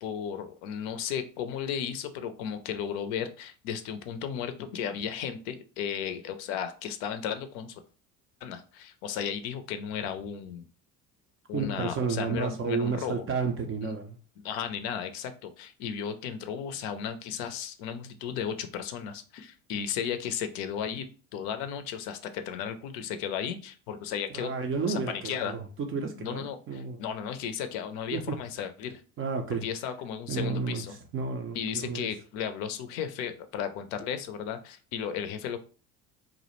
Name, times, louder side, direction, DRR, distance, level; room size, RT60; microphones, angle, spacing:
voice 1, 0.0-7.7 8.4-10.7 11.5-13.3 13.8-14.0 14.4-21.0 21.3-24.5 24.9-25.6 26.2-29.0 29.6-31.0 31.5-35.6, left 8 dB, 55° left, 9 dB, 0.5 m, -34 dB
voice 2, 11.5-14.2 24.3-27.0 28.1-28.4 29.2-29.6 30.3-30.8 31.1-32.1, right 5 dB, 30° right, 4 dB, 0.4 m, -31 dB
2.4 x 2.0 x 2.9 m, 0.37 s
hypercardioid pair, 65°, 48 cm